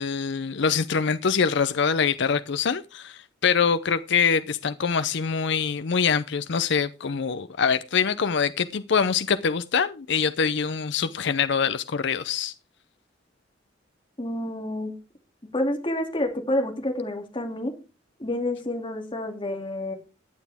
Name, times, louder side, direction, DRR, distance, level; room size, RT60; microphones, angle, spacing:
voice 1, 0.0-12.5, left 6 dB, 70° left, 0.6 m, -24 dB
voice 2, 14.2-14.9 15.5-17.7 18.2-19.9, left 1 dB, 25° left, 2.7 m, -28 dB
15.5 x 9.5 x 3.5 m
head